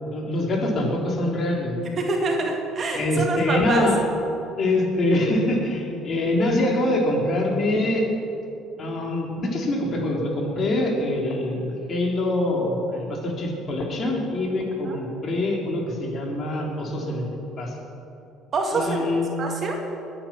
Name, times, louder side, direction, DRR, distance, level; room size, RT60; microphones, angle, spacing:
voice 1, 0.0-1.8 2.9-4.0 4.6-8.0 8.8-17.3 17.6-17.8 18.7-19.3, left 1 dB, 45° left, -1 dB, 4.0 m, -24 dB
voice 2, 2.0-3.9 14.8-15.0 18.5-19.1 19.4-19.8, right 3 dB, 45° right, 1 dB, 2.3 m, -26 dB
22.0 x 9.1 x 6.3 m, 2.8 s
supercardioid pair, 80°, 0 cm